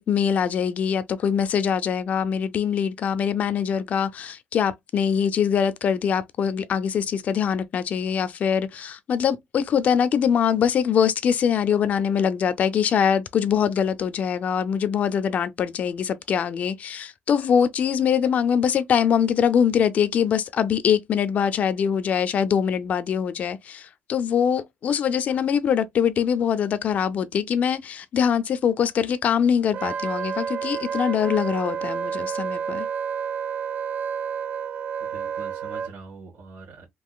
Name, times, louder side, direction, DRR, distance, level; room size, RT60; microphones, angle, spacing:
voice 1, 0.0-32.9, left 8 dB, 40° left, 0.4 m, -23 dB
Wind instrument woodwind instrument, 29.7-35.9, right 7 dB, 40° right, 0.3 m, -30 dB
voice 2, 35.0-36.8, right 3 dB, 65° right, 1.5 m, -43 dB
3.7 x 2.8 x 2.3 m
cardioid pair, 155°, 4 cm